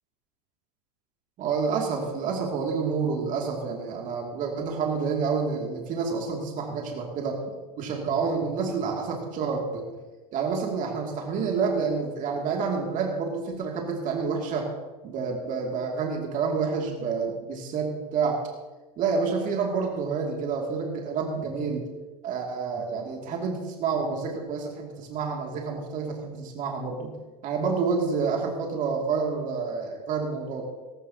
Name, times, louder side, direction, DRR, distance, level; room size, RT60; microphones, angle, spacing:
voice 1, 1.4-7.4 7.8-9.8 10.3-14.7 15.0-18.4 19.0-21.8 22.2-27.1 27.4-30.6, right 5 dB, 40° right, 0 dB, 2.5 m, -28 dB
17.0 x 16.0 x 2.9 m, 1.2 s
hypercardioid pair, 95°, 20 cm